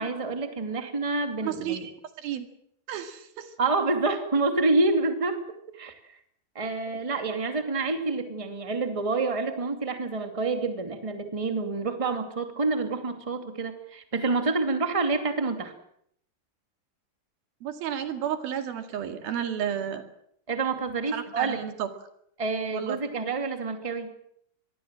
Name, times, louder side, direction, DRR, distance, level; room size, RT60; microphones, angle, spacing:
voice 1, 0.0-1.9 3.6-5.4 5.7-5.9 6.5-15.7 20.5-21.6 22.4-24.1, right 3 dB, 10° right, 6 dB, 2.0 m, -28 dB
voice 2, 1.4-1.9 2.2-2.5 2.9-3.5 17.6-20.0 21.1-21.9 22.7-23.0, right 9 dB, 90° right, 7 dB, 4.1 m, -32 dB
25.5 x 21.0 x 7.6 m, 0.69 s
omnidirectional pair, 4.1 m